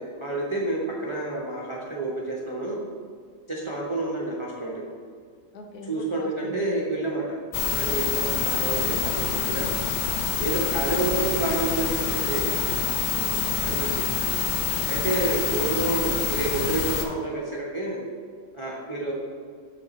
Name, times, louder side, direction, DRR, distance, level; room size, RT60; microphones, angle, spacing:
voice 1, 0.0-2.8 3.5-4.8 5.9-7.2 7.6-9.7 10.4-12.4 13.6-14.1 14.9-18.0 18.5-19.1, right 2 dB, 35° right, -4 dB, 0.5 m, -29 dB
voice 2, 5.5-6.6 11.1-11.3 11.9-12.0 12.3-12.8 13.1-13.7, left 3 dB, 60° left, 3 dB, 1.2 m, -41 dB
sound 1, 7.5-17.1, left 7 dB, 85° left, 1.4 m, -26 dB
6.8 x 6.5 x 4.0 m, 2.1 s
omnidirectional pair, 2.2 m